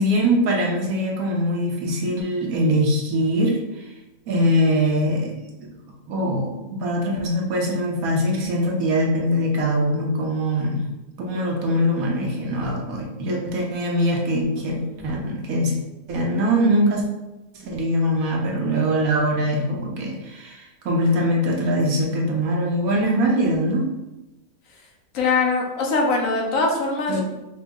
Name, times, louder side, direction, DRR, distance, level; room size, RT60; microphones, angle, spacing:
voice 1, 0.0-3.9 4.3-5.7 6.1-10.8 11.2-14.8 15.0-15.8 16.1-17.0 17.5-23.9 27.1-27.2, equal, 75° right, -1 dB, 1.2 m, -22 dB
voice 2, 14.6-15.1 25.1-27.2, left 3 dB, 70° left, 0 dB, 1.0 m, -23 dB
4.7 x 2.0 x 3.5 m, 1.0 s
omnidirectional pair, 1.5 m